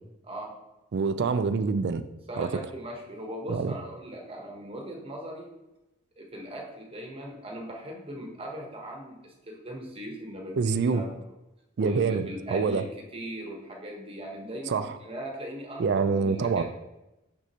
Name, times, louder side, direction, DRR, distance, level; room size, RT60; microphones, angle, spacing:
voice 1, 0.2-0.6 2.3-5.5 6.2-11.1 11.8-12.8 13.1-16.6, right 1 dB, 25° right, 0 dB, 1.0 m, -39 dB
voice 2, 0.9-2.0 2.4-2.5 3.5-3.7 10.5-11.0 11.8-12.8 14.7-14.9 15.8-16.6, right 5 dB, 55° right, 11 dB, 0.4 m, -26 dB
6.3 x 6.2 x 2.8 m, 0.97 s
head